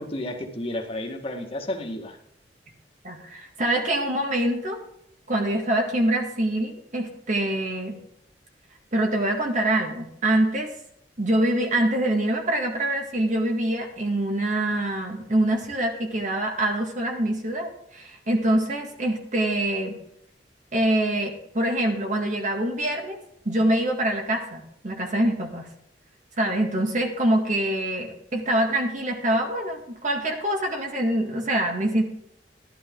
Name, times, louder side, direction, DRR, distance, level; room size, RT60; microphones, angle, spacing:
voice 1, 0.0-2.2, left 1 dB, 35° left, 1 dB, 1.9 m, -32 dB
voice 2, 3.0-4.8 5.3-8.0 8.9-10.7 11.2-20.0 20.7-23.2 23.5-25.7 26.4-32.0, right 1 dB, 45° right, 2 dB, 1.9 m, -25 dB
13.0 x 12.0 x 3.8 m, 0.74 s
head